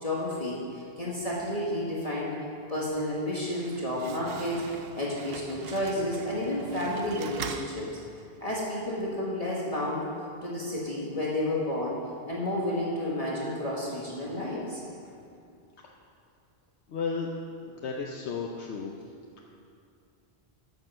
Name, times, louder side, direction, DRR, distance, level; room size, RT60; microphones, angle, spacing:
voice 1, 0.0-2.3 2.7-8.0 8.4-10.1 10.4-12.0 12.3-14.8, left 1 dB, 35° left, -6 dB, 1.7 m, -31 dB
Slam, 3.3-8.5, right 6 dB, 65° right, 0.8 m, -42 dB
voice 2, 16.9-17.3 17.7-18.9, left 5 dB, 85° left, 0 dB, 1.1 m, -33 dB
14.0 x 7.1 x 5.5 m, 2.5 s
omnidirectional pair, 1.1 m